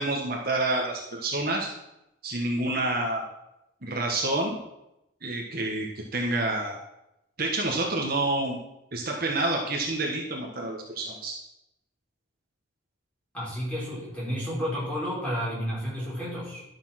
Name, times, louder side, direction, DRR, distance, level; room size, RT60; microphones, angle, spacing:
voice 1, 0.0-1.7 2.2-3.2 3.8-4.6 5.2-6.7 7.4-8.6 8.9-11.3, right 2 dB, 45° right, 0 dB, 1.5 m, -28 dB
voice 2, 13.3-16.6, equal, 5° left, -7 dB, 4.8 m, -31 dB
12.0 x 7.2 x 5.9 m, 0.87 s
head